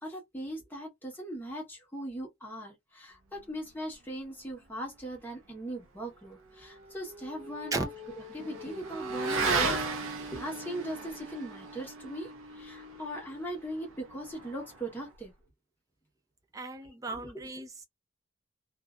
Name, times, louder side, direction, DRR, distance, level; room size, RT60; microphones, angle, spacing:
voice 1, 0.0-7.9 8.3-12.3 12.5-15.3 17.2-17.3, right 1 dB, 10° left, 1.0 m, -39 dB
Motorcycle / Accelerating revving vroom, 6.5-15.2, right 3 dB, 90° right, 0.6 m, -36 dB
voice 2, 16.5-17.8, right 3 dB, 15° right, 0.5 m, -36 dB
2.6 x 2.3 x 2.3 m
head